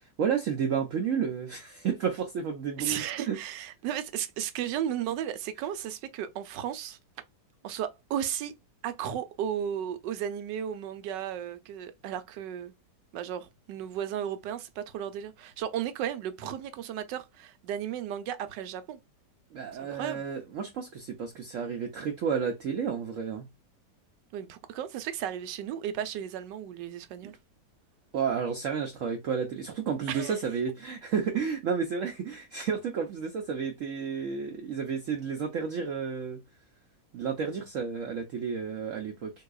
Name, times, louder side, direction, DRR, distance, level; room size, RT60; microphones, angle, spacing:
voice 1, 0.0-3.4 19.5-23.5 28.1-36.4 37.1-39.3, right 6 dB, 60° right, 0.9 m, -31 dB
voice 2, 2.8-7.0 7.6-8.5 8.8-12.7 13.1-19.0 19.8-20.2 24.3-27.4 30.1-30.4, right 10 dB, 90° right, 1.3 m, -34 dB
3.9 x 2.8 x 2.3 m
omnidirectional pair, 1.8 m